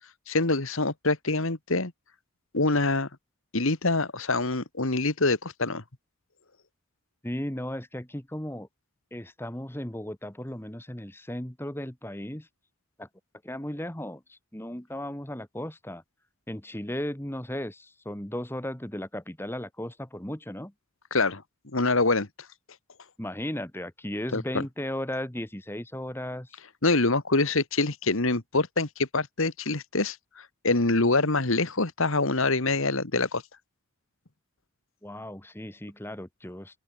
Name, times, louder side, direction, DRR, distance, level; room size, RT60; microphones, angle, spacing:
voice 1, 0.3-1.9 2.5-3.1 3.5-5.8 21.1-21.4 21.7-22.3 24.3-24.6 26.8-33.4, left 3 dB, 65° left, 1.8 m, -25 dB
voice 2, 7.2-8.7 9.1-12.5 13.0-13.1 13.4-16.0 16.5-20.7 23.2-26.5 35.0-36.8, left 1 dB, 10° left, 1.5 m, -36 dB
open air
head